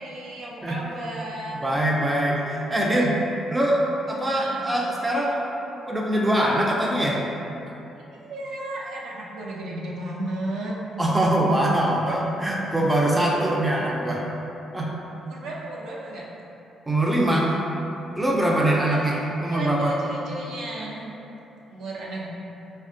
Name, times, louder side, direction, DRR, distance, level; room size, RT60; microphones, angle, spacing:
voice 1, 0.0-1.7 4.3-4.7 8.1-10.7 15.2-16.3 18.9-19.1 19.5-21.1 21.7-22.3, right 1 dB, 75° right, -4 dB, 0.5 m, -34 dB
voice 2, 1.6-3.2 3.5-5.5 5.9-7.2 11.0-14.3 14.7-14.9 16.9-17.6 18.2-19.9, right 1 dB, 15° right, -3 dB, 0.4 m, -23 dB
3.5 x 2.1 x 2.5 m, 2.9 s
cardioid pair, 90°, 0 cm